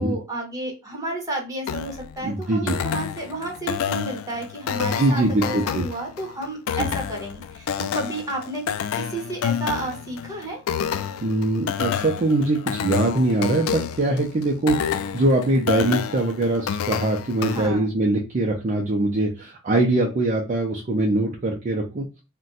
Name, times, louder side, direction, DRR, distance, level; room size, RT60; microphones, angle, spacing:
voice 1, 0.0-8.7 8.9-10.6 17.5-17.9, right 2 dB, 15° right, 0 dB, 1.0 m, -31 dB
sound 1, 1.7-17.7, left 8 dB, 80° left, 0.3 m, -29 dB
voice 2, 2.2-2.8 4.8-5.8 6.8-6.9 11.2-22.0, right 2 dB, 35° right, -1 dB, 0.5 m, -22 dB
2.5 x 2.2 x 3.9 m, 0.28 s
head